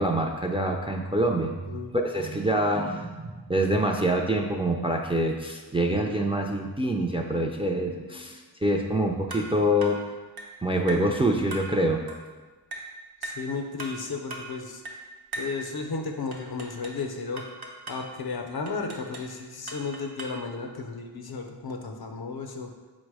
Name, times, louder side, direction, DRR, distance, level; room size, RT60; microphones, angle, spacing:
voice 1, 0.0-1.6 2.0-10.0 10.6-12.1, right 1 dB, 15° right, 2 dB, 0.3 m, -26 dB
sound 1, 9.3-9.5 9.8-10.0 10.4-10.6 10.9-11.1 11.5-11.7 12.1-12.3 12.7-12.9 13.2-13.5 13.8-14.0 14.3-14.5 14.8-15.0 15.3-15.6 16.3-17.0 17.4-18.1 18.7-19.3 19.7-20.4, right 2 dB, 60° right, 0.7 m, -39 dB
voice 2, 13.2-14.8 15.4-17.4 17.9-22.7, left 4 dB, 60° left, 3 dB, 0.6 m, -34 dB
4.6 x 2.1 x 4.7 m, 1.3 s
wide cardioid pair, 40°, 42 cm